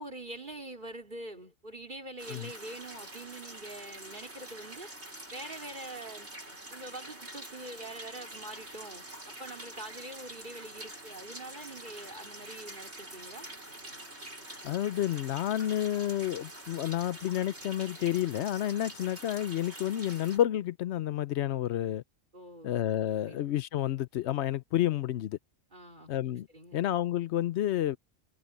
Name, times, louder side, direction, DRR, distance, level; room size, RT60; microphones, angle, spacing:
voice 1, 0.0-4.9 5.3-6.3 6.7-13.5 22.3-22.7 23.2-23.4 25.7-26.1 26.5-26.8, right 1 dB, 50° right, 3.7 m, -44 dB
sound 1, 2.2-20.4, right 1 dB, 85° right, 6.2 m, -46 dB
voice 2, 14.6-22.0 22.6-25.4 26.1-26.5 26.7-28.0, left 12 dB, 85° left, 0.9 m, -30 dB
omnidirectional pair, 1.1 m